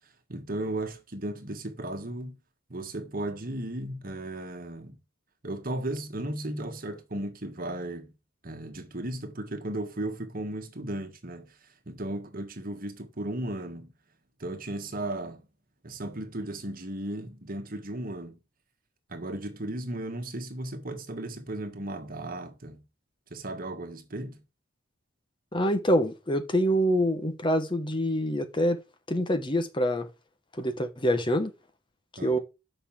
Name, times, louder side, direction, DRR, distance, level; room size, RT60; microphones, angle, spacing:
voice 1, 0.3-2.4 2.7-5.0 5.4-8.1 8.4-11.5 11.9-13.9 14.4-15.4 15.8-18.4 19.1-22.8 23.3-24.4 32.2-32.4, right 1 dB, 45° right, 1.6 m, -35 dB
voice 2, 25.5-28.8 29.1-30.1 30.5-31.5 32.2-32.4, equal, 25° left, 1.0 m, -26 dB
6.8 x 5.5 x 7.2 m
head